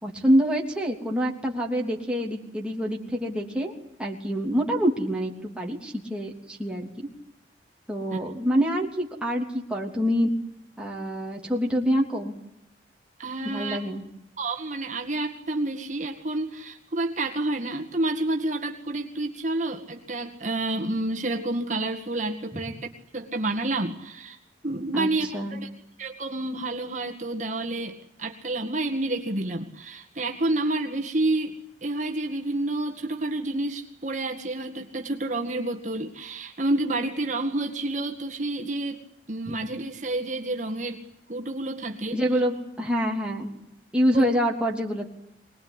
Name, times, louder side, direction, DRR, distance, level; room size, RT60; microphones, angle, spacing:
voice 1, 0.0-3.7 4.0-7.1 7.9-10.3 10.8-12.3 13.4-14.0 24.9-25.1 25.3-25.6 39.5-39.6 42.1-43.5 43.9-45.1, equal, 5° right, -1 dB, 3.1 m, -26 dB
voice 2, 13.2-13.8 14.4-22.9 23.1-24.4 24.6-25.7 26.0-31.5 31.8-39.0 39.3-41.0 41.3-42.2 44.1-44.2, right 2 dB, 40° right, 2 dB, 1.9 m, -29 dB
24.0 x 20.0 x 9.9 m, 0.81 s
head